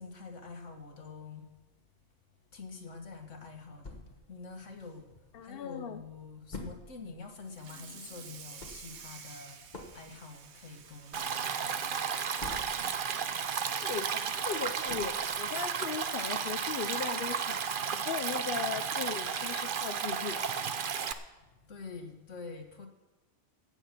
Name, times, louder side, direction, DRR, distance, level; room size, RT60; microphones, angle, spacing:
voice 1, 0.0-1.5 2.5-12.0 13.8-13.9 21.6-22.9, left 4 dB, 80° left, 5 dB, 1.9 m, -46 dB
sound 1, 3.8-5.4 5.8-5.9 6.0-13.1 13.4-15.6 16.0-16.1 16.5-16.6, left 3 dB, 40° left, 1.5 m, -48 dB
voice 2, 5.3-6.0 6.5-6.7 13.7-17.6 17.9-20.5, left 7 dB, 55° left, 9 dB, 0.9 m, -38 dB
Water tap faucet / Sink (filling or washing), 7.4-14.1 14.5-14.7 15.1-15.2 15.6-15.7 16.8-16.9 17.4-17.6, right 7 dB, 65° right, 1.2 m, -52 dB
Stream, 11.1-21.1, right 7 dB, 50° right, 0.8 m, -33 dB
15.0 x 9.0 x 5.9 m, 1.1 s
omnidirectional pair, 1.2 m